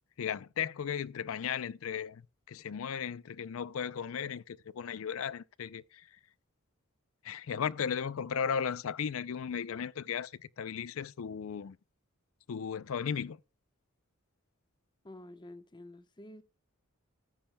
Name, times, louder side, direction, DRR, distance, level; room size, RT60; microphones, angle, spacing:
voice 1, 0.2-6.1 7.2-11.8 12.5-13.4, left 7 dB, 70° left, 0.4 m, -36 dB
voice 2, 15.0-16.4, left 1 dB, 20° left, 0.9 m, -49 dB
13.5 x 13.0 x 2.2 m
head